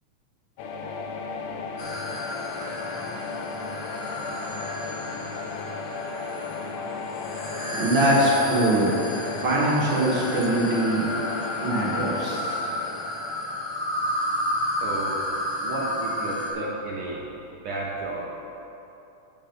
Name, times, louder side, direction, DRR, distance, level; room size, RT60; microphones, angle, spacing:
sound 1, 0.6-14.4, left 4 dB, 75° left, 1.7 m, -35 dB
sound 2, 1.8-16.5, left 1 dB, 60° left, 1.4 m, -32 dB
voice 1, 7.7-9.0 9.4-11.1 11.6-12.7, right 1 dB, 45° right, -5 dB, 1.6 m, -23 dB
voice 2, 14.7-15.2 15.6-17.2 17.5-18.5, right 2 dB, 75° right, -3 dB, 1.3 m, -32 dB
7.9 x 7.2 x 5.7 m, 2.9 s
omnidirectional pair, 3.6 m